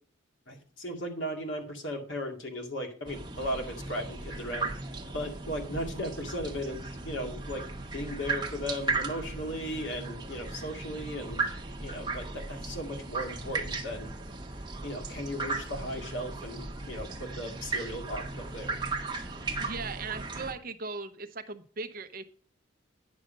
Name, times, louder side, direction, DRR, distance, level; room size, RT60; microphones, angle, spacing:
voice 1, 0.5-4.7 5.1-7.6 7.9-11.5 11.8-14.1 14.8-18.7, equal, 60° left, 2 dB, 2.2 m, -36 dB
sound 1, 3.1-20.5, right 3 dB, 20° right, 1.1 m, -36 dB
voice 2, 19.6-22.2, right 4 dB, 45° right, 9 dB, 0.7 m, -38 dB
9.7 x 6.4 x 5.2 m, 0.42 s
head